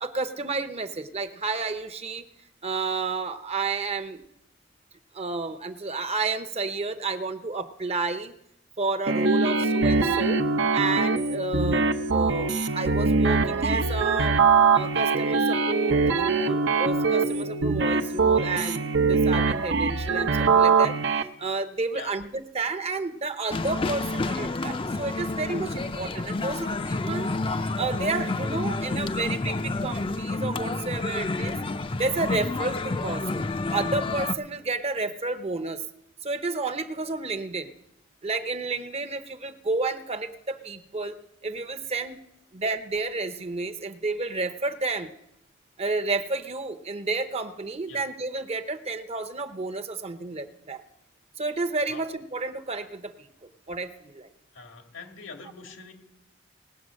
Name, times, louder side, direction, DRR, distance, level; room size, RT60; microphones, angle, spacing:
voice 1, 0.0-2.2 2.6-4.2 5.1-8.3 8.8-10.4 10.7-14.4 14.7-21.0 21.4-31.6 32.0-33.4 33.7-35.8 36.2-37.7 38.2-41.2 41.4-42.2 42.5-45.1 45.8-50.8 51.4-53.3 53.7-54.3, right 3 dB, 30° right, 8 dB, 0.8 m, -31 dB
sound 1, 9.1-21.2, right 4 dB, 65° right, 0.8 m, -23 dB
sound 2, 23.5-34.3, left 3 dB, 25° left, 0.6 m, -29 dB
voice 2, 54.5-55.9, left 4 dB, 90° left, 3 dB, 2.1 m, -43 dB
19.0 x 8.0 x 6.4 m, 0.81 s
head